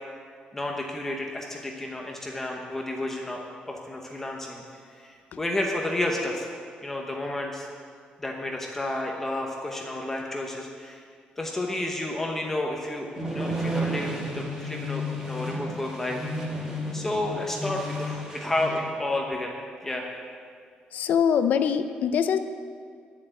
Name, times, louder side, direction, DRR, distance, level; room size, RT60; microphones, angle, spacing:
voice 1, 0.5-6.5 6.8-7.7 8.2-11.0 11.4-16.2 16.9-19.5 19.8-20.1, left 1 dB, 10° left, 0 dB, 0.9 m, -31 dB
sound 1, 13.1-18.8, equal, 20° right, 2.6 m, -32 dB
voice 2, 20.9-22.4, left 7 dB, 60° left, 10 dB, 0.5 m, -23 dB
10.5 x 7.5 x 9.1 m, 2.1 s
cardioid pair, 175°, 3 cm